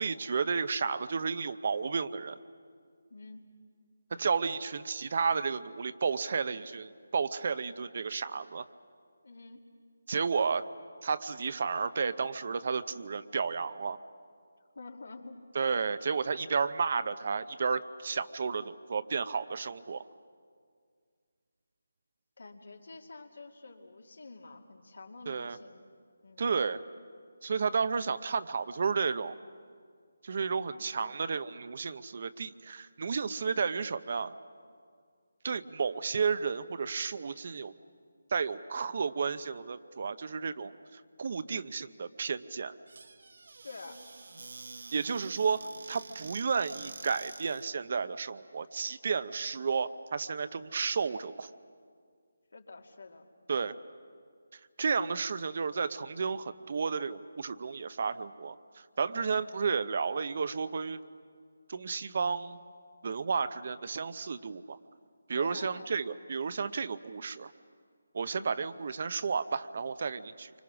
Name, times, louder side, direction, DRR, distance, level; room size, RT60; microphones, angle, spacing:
voice 1, 0.0-2.4 4.1-8.7 10.1-10.7 11.0-14.0 15.5-20.0 25.3-25.6 26.4-26.8 27.4-29.4 30.2-34.3 35.4-37.7 38.3-42.7 44.9-51.5 53.5-53.7 54.5-61.0 61.7-62.6 63.0-64.8 65.3-67.5 68.1-70.5, right 5 dB, 45° right, 13 dB, 0.7 m, -32 dB
voice 2, 3.1-3.5 9.2-9.6 14.7-15.4 22.4-25.8 26.2-26.5 30.7-31.1 43.6-44.1 52.5-53.3 59.1-59.3 65.3-65.9 68.4-68.6, left 3 dB, 70° left, 3 dB, 2.5 m, -48 dB
Squeak / Cupboard open or close, 42.9-47.7, right 3 dB, 65° right, 1.0 m, -48 dB
28.0 x 25.0 x 6.2 m, 2.1 s
figure-of-eight pair, 165°, 0 cm